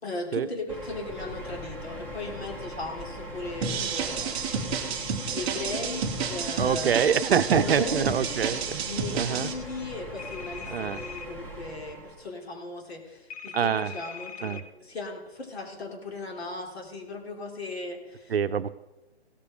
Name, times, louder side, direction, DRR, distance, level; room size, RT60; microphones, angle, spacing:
voice 1, 0.0-7.1 7.5-8.5 8.9-18.4, left 3 dB, 70° left, 1 dB, 3.5 m, -37 dB
sound 1, 0.7-12.3, equal, 5° left, 1.0 m, -41 dB
sound 2, 3.6-9.5, right 6 dB, 10° right, 0.6 m, -30 dB
voice 2, 6.6-8.8 9.1-9.5 10.7-11.0 13.5-13.9 14.4-14.6 18.3-18.7, right 8 dB, 60° right, 12 dB, 0.7 m, -25 dB
sound 3, 10.2-11.3 13.3-14.6, left 7 dB, 35° left, 0.7 m, -41 dB
16.5 x 6.8 x 5.1 m, 1.0 s
hypercardioid pair, 150°, 33 cm